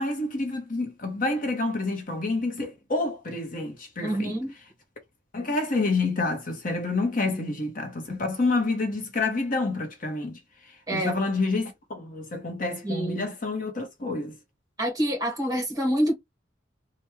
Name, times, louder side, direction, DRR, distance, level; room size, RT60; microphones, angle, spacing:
voice 1, 0.0-4.3 5.3-10.4 10.9-14.3, left 3 dB, 45° left, 0.9 m, -28 dB
voice 2, 4.0-4.5 7.3-7.4 10.9-11.1 12.8-13.3 14.8-16.1, equal, 20° right, 1.3 m, -27 dB
3.4 x 2.3 x 3.1 m
head